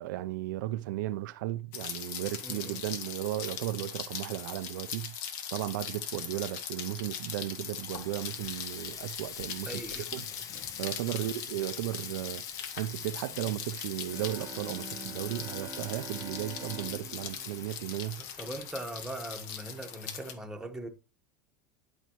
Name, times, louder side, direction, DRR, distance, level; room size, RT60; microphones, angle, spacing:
voice 1, 0.0-5.2 5.5-9.8 10.1-10.2 10.8-12.4 12.7-18.2, right 15 dB, 75° right, 0.5 m, -35 dB
Rain, 1.7-20.3, left 8 dB, 60° left, 1.2 m, -40 dB
voice 2, 2.4-2.8 9.7-10.5 11.1-11.4 18.2-20.9, right 1 dB, 5° right, 1.2 m, -41 dB
Water tap faucet, 7.5-19.2, left 8 dB, 35° left, 0.6 m, -47 dB
Bowed string instrument, 14.0-18.9, right 5 dB, 25° right, 1.1 m, -46 dB
11.5 x 4.4 x 2.9 m
supercardioid pair, 115°, 10 cm